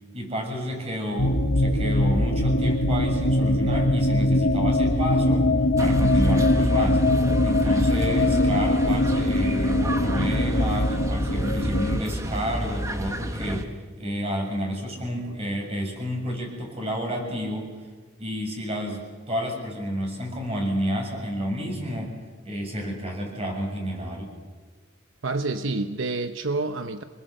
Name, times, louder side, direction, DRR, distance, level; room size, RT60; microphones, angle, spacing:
voice 1, 0.1-5.5 5.8-7.0 7.4-13.7 14.0-17.7 18.2-22.2 22.4-24.3, equal, 30° right, 2 dB, 6.9 m, -30 dB
sound 1, 1.2-12.0, left 1 dB, 60° left, 1.3 m, -22 dB
sound 2, 5.8-13.6, equal, 15° right, 1.4 m, -29 dB
voice 2, 25.2-27.0, right 3 dB, 80° right, 8 dB, 1.0 m, -28 dB
27.0 x 21.0 x 7.9 m, 1.4 s
head